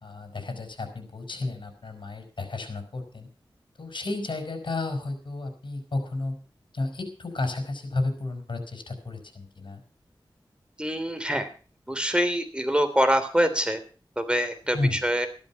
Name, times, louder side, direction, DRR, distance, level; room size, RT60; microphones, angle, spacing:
voice 1, 0.0-3.3 3.8-6.4 6.7-9.8 14.7-15.1, left 2 dB, 70° left, 6 dB, 4.7 m, -32 dB
voice 2, 10.8-11.5 11.9-13.8 14.2-15.3, equal, 10° right, 7 dB, 3.1 m, -25 dB
14.0 x 12.5 x 5.7 m, 0.37 s
wide cardioid pair, 60°, 9 cm